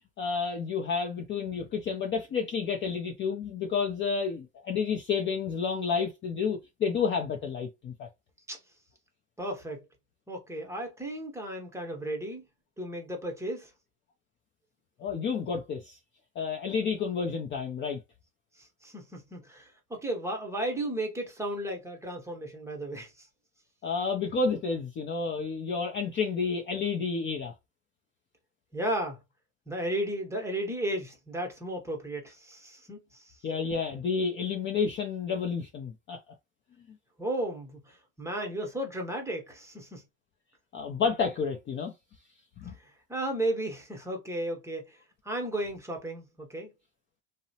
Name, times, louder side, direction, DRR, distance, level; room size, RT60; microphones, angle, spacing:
voice 1, 0.2-8.1 15.0-16.0 16.4-18.0 23.8-27.5 33.4-36.2 40.7-41.9 42.6-42.8, left 5 dB, 30° left, 0.4 m, -30 dB
voice 2, 9.4-9.8 10.3-12.5 12.8-13.7 18.6-23.3 28.7-29.2 29.7-33.4 37.2-40.0 42.8-45.0 45.2-46.7, right 1 dB, 5° right, 0.8 m, -34 dB
2.7 x 2.1 x 2.7 m
supercardioid pair, 120°, 41 cm